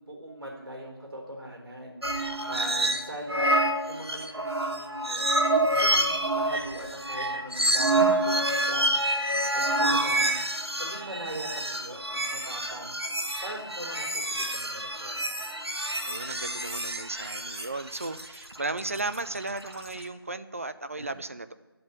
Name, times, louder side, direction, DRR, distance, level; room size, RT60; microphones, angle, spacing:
voice 1, 0.0-5.3 5.7-8.9 9.5-10.4 10.8-13.0 13.4-15.2 21.0-21.2, right 1 dB, 65° right, 0 dB, 4.6 m, -41 dB
sound 1, 2.0-3.0 3.3-20.0, right 1 dB, 85° right, 1.2 m, -27 dB
voice 2, 16.0-21.5, right 2 dB, 35° right, 12 dB, 0.4 m, -35 dB
11.0 x 5.4 x 8.6 m, 1.2 s
figure-of-eight pair, 165°, 13 cm